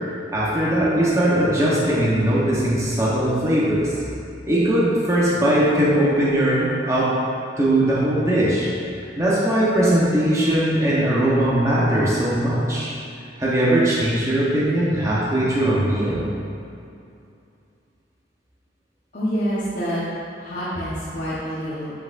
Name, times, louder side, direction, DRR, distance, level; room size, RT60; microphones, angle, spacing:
voice 1, 0.3-3.9 4.4-7.1 7.6-8.7 8.9-12.9 13.4-16.3, right 1 dB, 15° right, -8 dB, 1.0 m, -20 dB
voice 2, 19.1-20.0 20.4-21.9, equal, 50° left, -11 dB, 1.1 m, -26 dB
7.5 x 5.9 x 2.6 m, 2.5 s
head